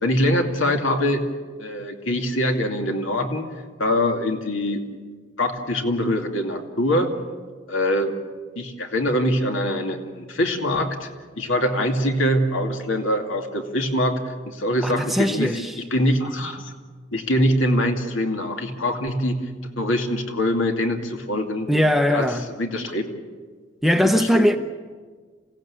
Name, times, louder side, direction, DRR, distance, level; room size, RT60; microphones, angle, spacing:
voice 1, 0.0-1.3 1.6-3.5 3.8-4.8 5.4-7.2 7.7-8.2 8.6-11.1 11.4-15.6 15.9-16.7 17.1-19.5 19.8-21.7 22.1-22.3 22.6-23.1 24.1-24.5, left 1 dB, 80° left, 2.5 m, -23 dB
voice 2, 14.8-15.8 21.7-22.5 23.8-24.6, equal, ahead, 0.6 m, -20 dB
28.0 x 16.5 x 8.6 m
head